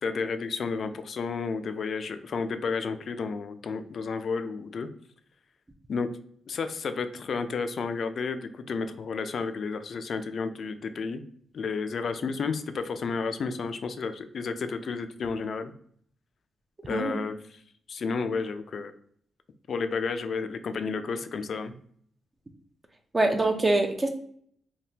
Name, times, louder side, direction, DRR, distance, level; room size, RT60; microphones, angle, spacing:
voice 1, 0.0-4.9 5.9-6.1 6.5-11.2 11.5-15.7 16.9-17.6 17.9-18.9 19.7-21.7, left 4 dB, 60° left, 9 dB, 0.3 m, -31 dB
voice 2, 16.9-17.2 23.1-24.1, right 2 dB, 25° right, 4 dB, 0.4 m, -24 dB
3.4 x 2.1 x 2.7 m, 0.63 s
cardioid pair, 95°, 0 cm